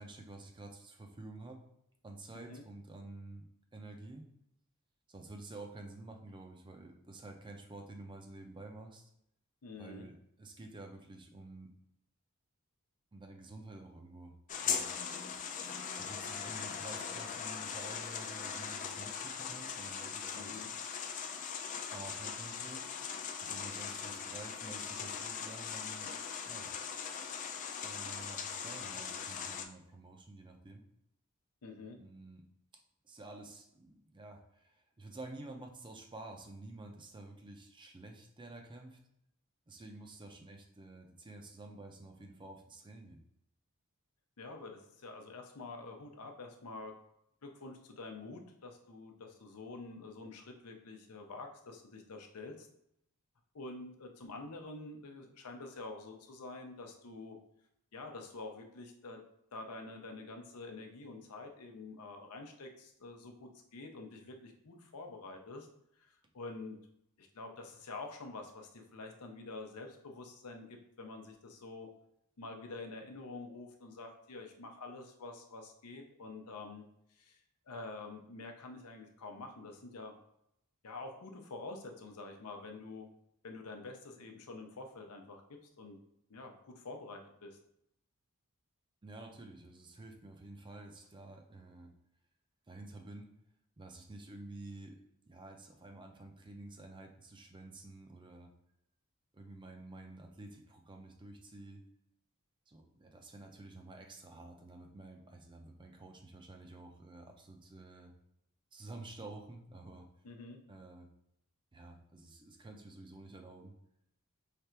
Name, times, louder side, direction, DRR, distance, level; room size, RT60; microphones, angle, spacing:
voice 1, 0.0-1.6 2.0-3.4 3.7-4.3 5.1-9.1 9.8-11.7 13.1-14.3 14.6-15.1 16.0-20.7 21.9-22.9 23.4-26.1 26.4-26.7 27.8-30.8 32.0-32.5 33.0-39.0 39.7-43.2 89.0-91.9 92.7-93.3 93.8-95.0 95.3-98.5 99.3-101.8 102.7-108.1 108.7-110.1 110.7-111.1 111.7-113.7, right 2 dB, 20° right, 3 dB, 0.5 m, -50 dB
voice 2, 9.6-10.1 20.3-20.7 31.6-32.0 44.4-46.9 47.4-52.7 53.5-57.4 57.9-59.2 59.5-65.7 66.0-66.8 67.2-71.9 72.4-76.9 77.2-77.4 77.7-80.1 80.8-83.1 83.4-85.4 85.8-86.0 86.3-87.6 110.2-110.6, left 3 dB, 85° left, 4 dB, 0.7 m, -47 dB
sound 1, 14.5-29.7, left 7 dB, 35° left, 0.3 m, -40 dB
3.3 x 2.5 x 4.3 m, 0.76 s
head